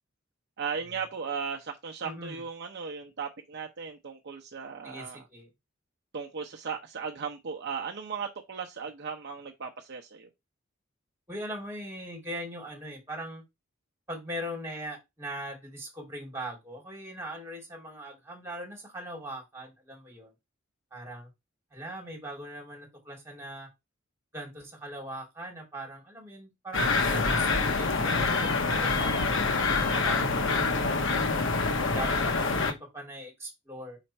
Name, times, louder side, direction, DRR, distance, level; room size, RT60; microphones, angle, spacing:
voice 1, 0.6-5.2 6.1-10.3 31.9-32.1, right 6 dB, 55° right, 0.8 m, -37 dB
voice 2, 2.0-2.4 4.8-5.5 11.3-13.4 14.1-20.3 20.9-21.3 21.7-23.7 24.3-31.4 31.8-34.0, right 1 dB, 15° right, 2.9 m, -40 dB
sound 1, 26.7-32.7, left 3 dB, 65° left, 1.0 m, -26 dB
5.0 x 4.4 x 4.3 m
head